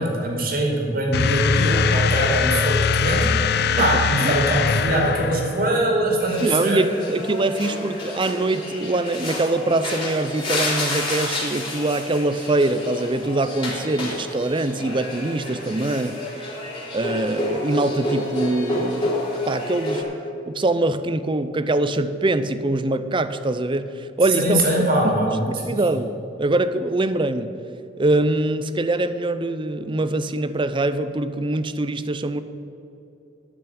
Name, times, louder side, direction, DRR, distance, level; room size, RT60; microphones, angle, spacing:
voice 1, 0.0-3.3 3.8-6.8 24.4-25.8, right 1 dB, 50° right, 0 dB, 2.6 m, -22 dB
sound 1, 1.1-5.8, left 5 dB, 60° left, 0.5 m, -21 dB
voice 2, 3.8-4.4 6.4-16.5 16.9-19.2 19.5-20.1 20.5-24.9 25.7-26.1 26.4-27.5 28.0-32.4, right 2 dB, 25° right, 12 dB, 0.5 m, -23 dB
sound 2, 6.2-20.0, left 1 dB, 25° left, 3.2 m, -29 dB
12.0 x 6.2 x 8.7 m, 2.9 s
head